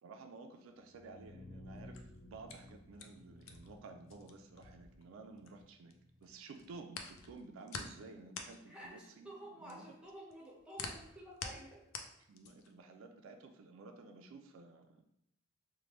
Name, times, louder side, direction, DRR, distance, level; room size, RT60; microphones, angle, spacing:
voice 1, 0.0-9.3 9.6-9.9 12.3-15.0, right 3 dB, 85° right, 6 dB, 0.4 m, -53 dB
sound 1, 0.8-6.8, left 1 dB, 50° left, 1.5 m, -56 dB
sound 2, 1.7-5.9 6.2-12.8, left 5 dB, 80° left, 0.4 m, -48 dB
voice 2, 8.6-11.8, right 1 dB, 5° right, -3 dB, 0.7 m, -51 dB
3.2 x 2.2 x 2.9 m, 0.79 s
head